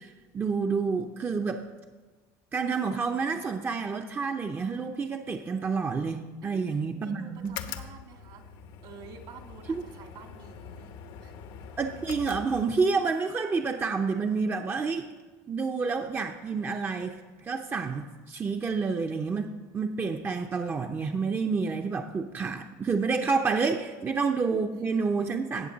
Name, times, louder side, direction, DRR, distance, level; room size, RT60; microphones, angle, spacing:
voice 1, 0.0-1.6 2.5-7.6 9.7-9.8 11.8-15.1 15.5-25.7, right 4 dB, 25° right, 5 dB, 0.6 m, -29 dB
voice 2, 6.4-8.4 8.8-11.0 11.2-11.3, right 6 dB, 60° right, 5 dB, 1.8 m, -49 dB
sound 1, 7.4-13.1, left 7 dB, 65° left, 0.8 m, -43 dB
17.0 x 6.9 x 4.0 m, 1.3 s
supercardioid pair, 110°, 9 cm